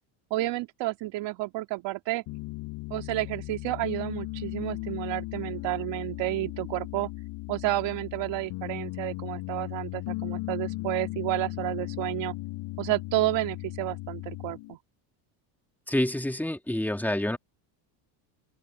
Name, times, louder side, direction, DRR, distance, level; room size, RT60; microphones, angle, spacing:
voice 1, 0.3-2.2 2.9-7.1 7.5-12.3 12.8-14.8, right 17 dB, 70° right, 2.4 m, -31 dB
Piano, 2.3-14.7, left 21 dB, 75° left, 7.2 m, -37 dB
voice 2, 15.9-17.4, left 1 dB, 5° left, 2.7 m, -27 dB
open air
supercardioid pair, 105°, 46 cm